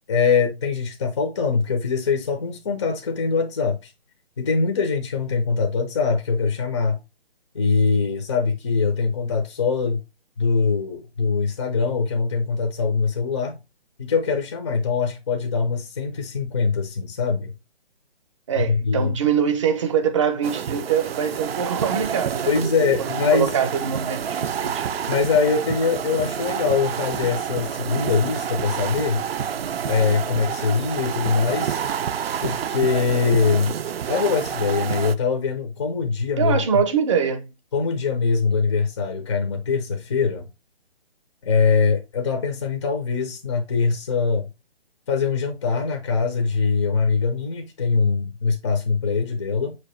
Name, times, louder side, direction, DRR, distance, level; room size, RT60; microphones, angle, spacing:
voice 1, 0.1-3.9 4.4-7.0 7.5-10.0 10.4-13.6 14.0-17.5 18.6-19.1 22.5-23.5 25.1-29.2 29.9-31.8 32.4-33.7 34.1-36.6 37.7-40.5 41.4-44.5 45.1-49.8, left 5 dB, 30° left, 0.5 m, -22 dB
voice 2, 18.5-22.5 23.1-24.9 36.4-37.5, right 7 dB, 30° right, 0.7 m, -23 dB
sound 1, 20.4-35.1, right 8 dB, 70° right, 0.5 m, -28 dB
6.0 x 2.9 x 3.1 m
figure-of-eight pair, 150°, 31 cm